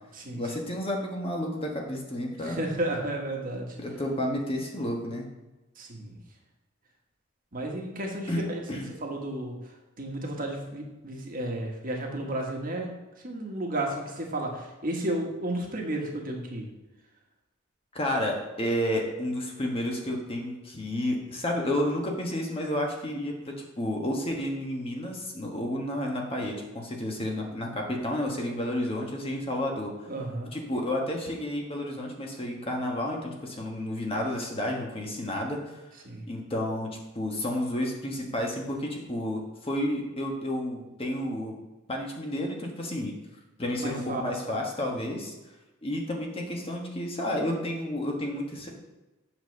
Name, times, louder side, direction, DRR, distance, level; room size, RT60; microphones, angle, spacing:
voice 1, 0.3-2.6 3.8-5.3 8.3-8.4 8.7-8.9 17.9-29.9 30.5-35.8 36.3-36.9 37.1-41.6 41.9-43.1 43.6-45.3 45.8-48.7, left 1 dB, 30° left, 0 dB, 1.3 m, -31 dB
voice 2, 2.4-3.8 5.8-6.2 7.5-8.6 9.0-9.5 10.0-12.9 13.2-16.7 30.1-30.5 36.0-36.2 43.8-44.2, right 1 dB, 45° right, 0 dB, 1.5 m, -32 dB
8.0 x 4.2 x 6.4 m, 1.1 s
head